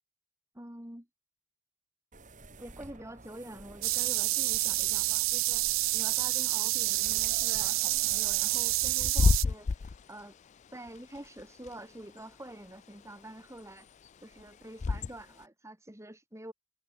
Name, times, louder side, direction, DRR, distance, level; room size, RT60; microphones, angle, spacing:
voice 1, 0.5-1.1 2.6-5.7 5.9-10.3 10.7-13.9 14.2-16.5, right 1 dB, 15° right, 4.1 m, -47 dB
sound 1, 2.1-8.9, right 2 dB, 40° right, 2.5 m, -51 dB
sound 2, 3.8-9.4, right 19 dB, 75° right, 0.5 m, -28 dB
Bird / Wind, 6.7-15.4, left 4 dB, 35° left, 0.3 m, -33 dB
head